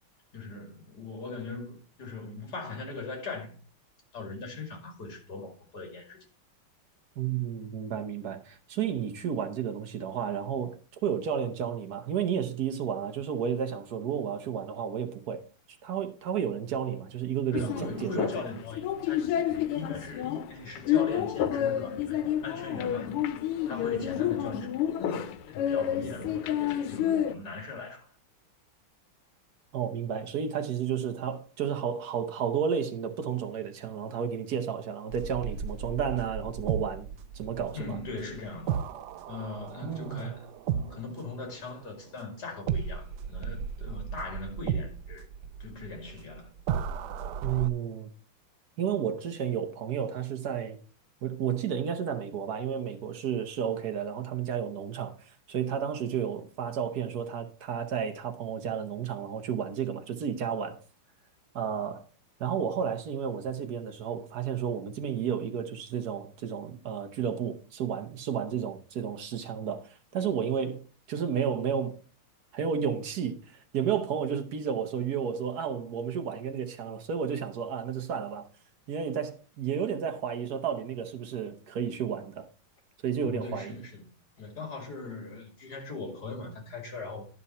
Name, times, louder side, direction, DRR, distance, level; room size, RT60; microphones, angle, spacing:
voice 1, 0.3-3.6 4.1-6.2 17.5-23.1 23.7-28.1 37.7-38.8 39.3-45.3 45.6-46.5 83.2-84.1 84.4-87.2, left 3 dB, 45° left, 2.7 m, -40 dB
voice 2, 7.2-15.4 15.8-18.3 29.7-37.1 37.3-38.0 39.8-40.3 47.4-48.1 48.8-50.8 51.2-60.8 61.5-62.0 62.4-72.0 72.5-78.5 78.9-82.5 83.0-83.8, right 8 dB, 60° right, 1.2 m, -32 dB
sound 1, 17.5-27.4, left 10 dB, 85° left, 1.6 m, -29 dB
sound 2, 35.1-42.2 42.7-47.7, right 8 dB, 90° right, 0.9 m, -35 dB
11.0 x 5.6 x 4.2 m
omnidirectional pair, 2.4 m